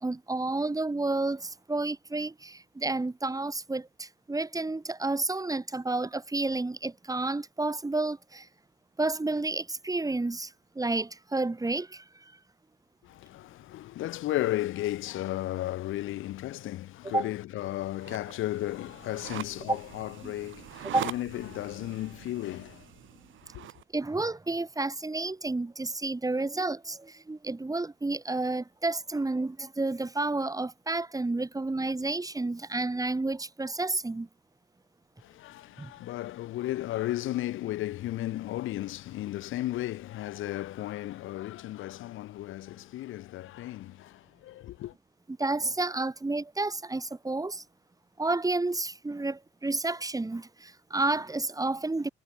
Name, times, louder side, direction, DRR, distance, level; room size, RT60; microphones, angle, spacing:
voice 1, 0.0-8.5 9.0-12.3 17.0-17.3 19.7-19.8 20.2-20.3 20.8-21.1 23.9-34.3 35.8-35.9 45.4-47.6 48.2-52.1, right 2 dB, 15° right, 3.5 m, -30 dB
voice 2, 13.0-22.9 23.5-23.7 35.2-44.9, left 15 dB, 85° left, 2.9 m, -34 dB
sound 1, 18.0-23.8, right 12 dB, 80° right, 7.0 m, -43 dB
cardioid pair, 90°, 20 cm